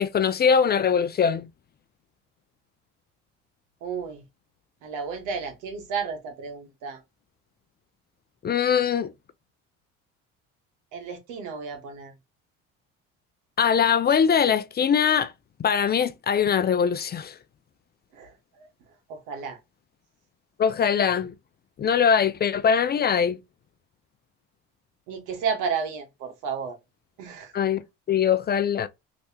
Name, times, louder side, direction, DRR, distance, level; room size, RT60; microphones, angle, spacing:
voice 1, 0.0-1.5 8.4-9.1 13.6-15.3 15.6-17.3 20.6-21.3 21.8-23.4 27.5-27.8 28.1-28.9, left 7 dB, 30° left, 0.5 m, -22 dB
voice 2, 3.8-4.2 4.8-7.0 10.9-12.1 18.1-18.7 19.1-19.6 25.1-26.8 27.2-27.5, right 6 dB, 80° right, 1.4 m, -32 dB
3.2 x 3.1 x 2.8 m
supercardioid pair, 90°, 31 cm